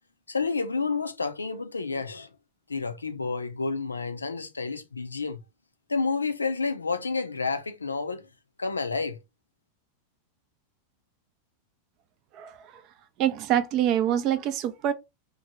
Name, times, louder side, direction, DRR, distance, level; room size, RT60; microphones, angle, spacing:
voice 1, 0.3-2.3 2.7-5.4 5.9-8.3 8.6-9.2, left 4 dB, 80° left, 0.4 m, -30 dB
voice 2, 13.2-14.9, right 10 dB, 40° right, 0.4 m, -25 dB
3.1 x 2.1 x 2.7 m
figure-of-eight pair, 90°, 0 cm